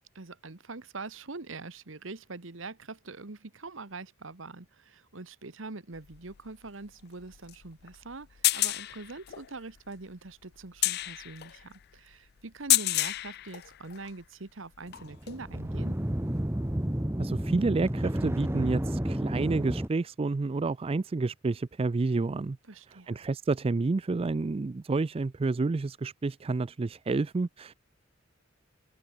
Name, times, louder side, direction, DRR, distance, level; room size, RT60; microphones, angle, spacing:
voice 1, 0.1-16.0 22.7-23.1, right 3 dB, 70° right, 1.4 m, -43 dB
sound 1, 5.9-14.2 14.7-15.5 16.8-16.9, left 17 dB, 55° left, 0.4 m, -31 dB
sound 2, 14.9-19.9, right 1 dB, 15° right, 1.0 m, -31 dB
voice 2, 17.2-22.6 23.1-27.7, right 3 dB, 30° right, 0.4 m, -29 dB
open air
head